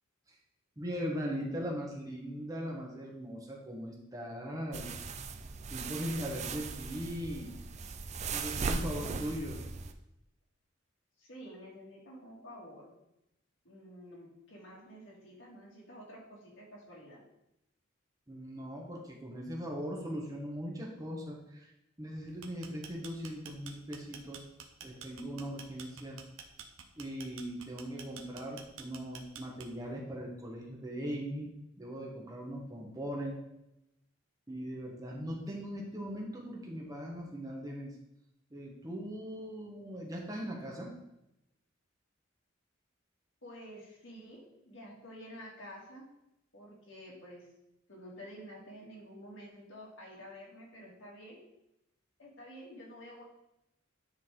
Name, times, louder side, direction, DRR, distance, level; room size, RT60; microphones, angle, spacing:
voice 1, 0.8-4.9 5.7-7.6 8.3-9.6 18.3-21.7 22.0-24.4 24.8-26.2 27.0-33.4 34.5-37.9 38.5-40.9, equal, 20° right, -1 dB, 1.1 m, -39 dB
sound 1, 4.7-9.9, right 4 dB, 35° right, 0.5 m, -38 dB
voice 2, 11.2-13.0 13.6-17.3 43.4-46.1 46.5-47.5 47.9-51.4 52.2-53.2, equal, 70° left, -3 dB, 2.1 m, -50 dB
sound 2, 22.3-29.9, right 7 dB, 85° right, 0.7 m, -49 dB
9.2 x 4.1 x 3.7 m, 0.87 s
head